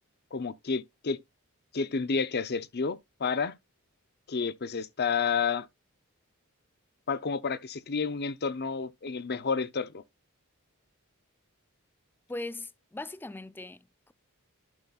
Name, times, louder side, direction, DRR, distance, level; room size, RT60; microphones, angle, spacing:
voice 1, 0.3-1.2 1.7-3.6 4.3-5.7 7.1-10.0, left 5 dB, 50° left, 0.7 m, -30 dB
voice 2, 12.3-14.1, left 2 dB, 10° left, 0.4 m, -40 dB
11.5 x 5.7 x 2.4 m
head